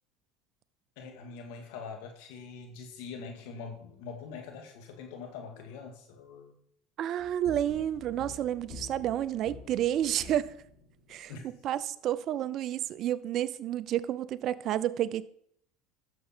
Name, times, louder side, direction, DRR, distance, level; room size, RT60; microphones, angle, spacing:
voice 1, 1.0-6.6 11.3-11.4, left 5 dB, 75° left, 2.1 m, -43 dB
voice 2, 7.0-10.5 11.1-11.3 11.6-15.3, right 11 dB, 50° right, 0.5 m, -30 dB
sound 1, 7.2-11.2, left 5 dB, 45° left, 4.4 m, -48 dB
11.5 x 6.9 x 4.4 m
supercardioid pair, 105°, 0 cm